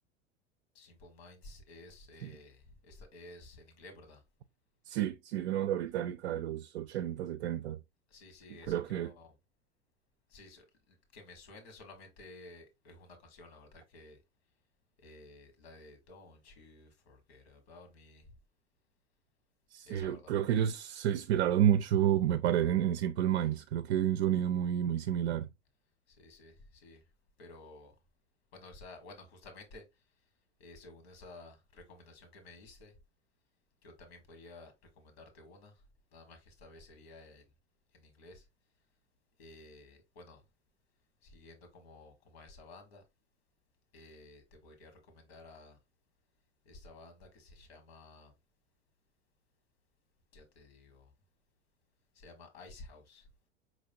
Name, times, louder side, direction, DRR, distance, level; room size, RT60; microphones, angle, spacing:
voice 1, 0.7-4.2 8.1-9.4 10.3-14.2 15.0-18.3 19.8-20.3 26.1-27.1 27.4-28.0 28.5-30.3 30.6-33.0 33.8-35.8 36.1-37.4 37.9-38.5 39.4-40.4 41.2-43.0 43.9-45.8 46.6-48.3 50.3-51.1 52.1-53.3, left 2 dB, 65° left, 1.6 m, -54 dB
voice 2, 4.9-7.8 8.7-9.1 19.7-25.5, right 10 dB, 70° right, 0.5 m, -30 dB
5.0 x 3.1 x 2.6 m
figure-of-eight pair, 80°, 33 cm